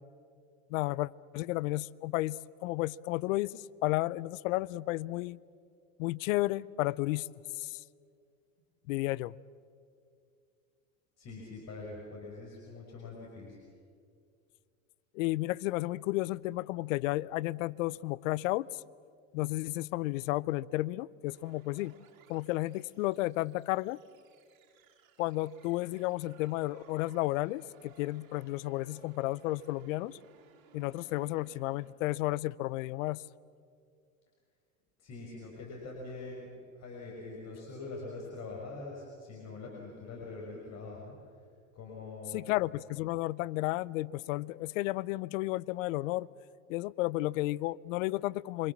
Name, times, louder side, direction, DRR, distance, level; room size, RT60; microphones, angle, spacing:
voice 1, 0.7-5.4 6.0-7.3 7.6-7.8 8.9-9.3 15.1-18.8 19.3-22.0 22.3-24.0 25.2-30.2 30.7-33.2 42.3-46.3 46.7-48.7, left 18 dB, 70° left, 22 dB, 0.7 m, -32 dB
voice 2, 11.2-13.6 35.0-36.5 36.7-41.2 41.7-42.4, left 3 dB, 40° left, -2 dB, 6.2 m, -44 dB
sound 1, 21.3-31.9, right 7 dB, 75° right, 4.2 m, -61 dB
27.5 x 25.0 x 7.3 m, 2.3 s
hypercardioid pair, 95°, 41 cm